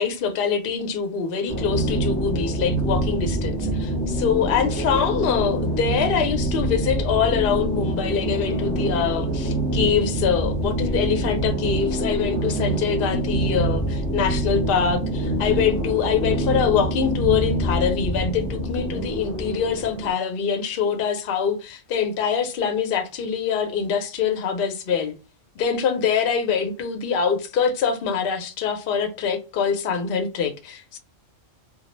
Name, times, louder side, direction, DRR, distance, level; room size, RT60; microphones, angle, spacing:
voice 1, 0.0-25.1 25.6-31.0, left 7 dB, 55° left, 0.7 m, -24 dB
sound 1, 1.5-20.1, right 1 dB, 15° left, 0.5 m, -25 dB
2.2 x 2.0 x 3.0 m
omnidirectional pair, 1.3 m